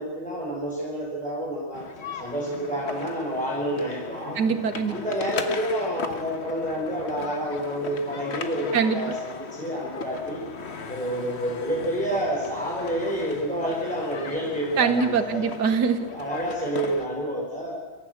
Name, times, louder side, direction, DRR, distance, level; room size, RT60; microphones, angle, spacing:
voice 1, 0.0-1.8 2.2-4.4 4.9-10.4 10.9-15.5 16.1-17.7, equal, 5° left, -4 dB, 4.4 m, -29 dB
sound 1, 1.7-17.1, left 5 dB, 40° left, 1.3 m, -37 dB
voice 2, 4.4-4.9 8.7-9.1 14.8-16.1, right 6 dB, 60° right, 10 dB, 1.6 m, -23 dB
25.0 x 14.0 x 8.0 m, 1.3 s
omnidirectional pair, 2.1 m